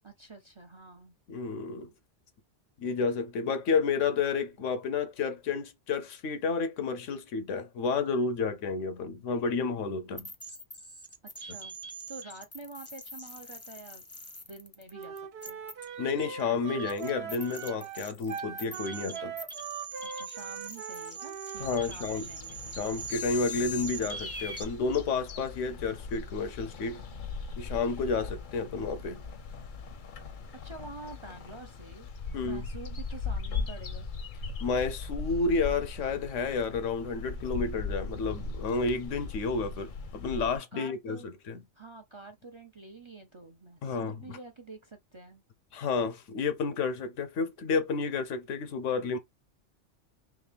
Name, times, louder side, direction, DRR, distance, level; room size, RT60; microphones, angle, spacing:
voice 1, 0.0-1.1 11.3-11.8 12.1-14.0 14.5-15.2 15.5-15.6 20.1-22.8 30.6-32.1 32.4-34.1 40.5-41.3 41.7-45.4, right 3 dB, 35° right, 0.5 m, -47 dB
voice 2, 1.3-1.9 2.8-10.3 16.0-19.3 21.6-22.3 22.8-27.0 27.6-29.2 32.3-32.7 34.6-41.2 41.5-41.6 43.8-44.4 45.7-49.2, left 4 dB, 85° left, 1.1 m, -31 dB
sound 1, 10.2-24.6, right 1 dB, 20° left, 0.4 m, -42 dB
Wind instrument woodwind instrument, 14.9-21.7, right 6 dB, 60° right, 0.9 m, -41 dB
sound 2, 21.5-40.6, left 4 dB, 50° left, 0.7 m, -39 dB
3.6 x 3.1 x 3.3 m
omnidirectional pair, 1.2 m